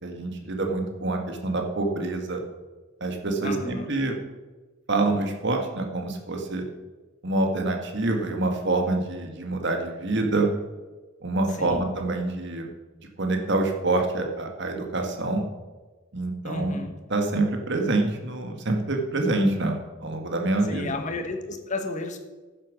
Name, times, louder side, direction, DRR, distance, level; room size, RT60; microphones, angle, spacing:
voice 1, 0.0-2.4 3.0-4.2 4.9-6.6 7.2-10.5 11.2-12.7 13.2-15.4 16.1-16.8 17.1-21.0, right 2 dB, 55° right, 3 dB, 1.7 m, -26 dB
voice 2, 3.4-3.9 11.6-11.8 16.4-16.9 20.7-22.2, left 3 dB, 35° left, 4 dB, 1.2 m, -32 dB
10.5 x 7.5 x 6.2 m, 1.2 s
head